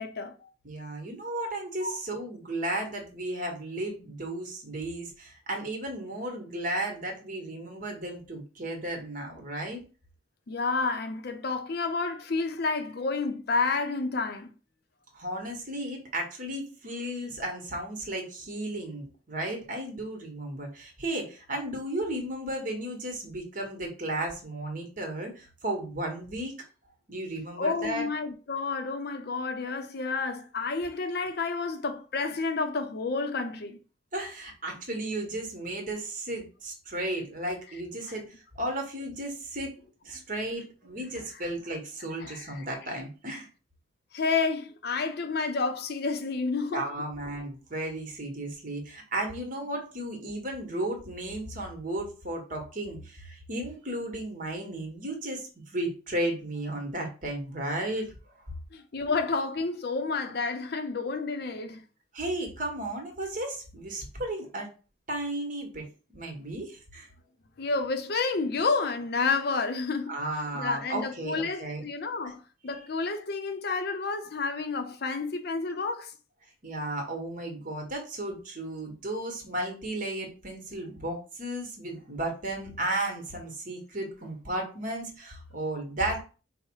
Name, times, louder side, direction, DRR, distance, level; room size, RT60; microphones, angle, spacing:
voice 1, 0.0-0.5 1.8-2.0 10.5-14.5 27.6-33.8 38.1-38.2 42.2-42.7 44.1-46.9 58.7-61.8 67.6-70.2 70.5-76.1, left 4 dB, 60° left, 0.5 m, -30 dB
voice 2, 0.6-9.8 15.1-26.6 27.1-28.1 34.1-38.2 38.5-39.7 40.0-43.5 46.7-58.1 62.1-64.7 65.1-65.8 66.1-67.1 70.1-71.8 72.2-72.3 76.6-86.2, right 1 dB, 50° right, 1.2 m, -34 dB
4.7 x 2.1 x 4.5 m
head